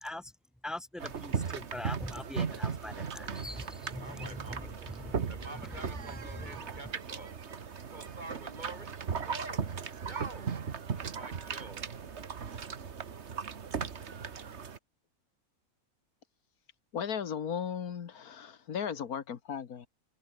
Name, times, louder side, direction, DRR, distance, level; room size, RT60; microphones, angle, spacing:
voice 1, 0.0-0.3 0.6-5.8 6.2-6.7, left 1 dB, ahead, 1.5 m, -42 dB
sound 1, 1.0-14.8, right 6 dB, 50° right, 1.6 m, -37 dB
voice 2, 4.0-4.7 5.3-7.3 7.9-9.7 10.0-10.5 11.0-11.8, right 2 dB, 30° right, 1.6 m, -47 dB
voice 3, 16.9-19.9, left 7 dB, 80° left, 1.8 m, -36 dB
omnidirectional pair, 1.6 m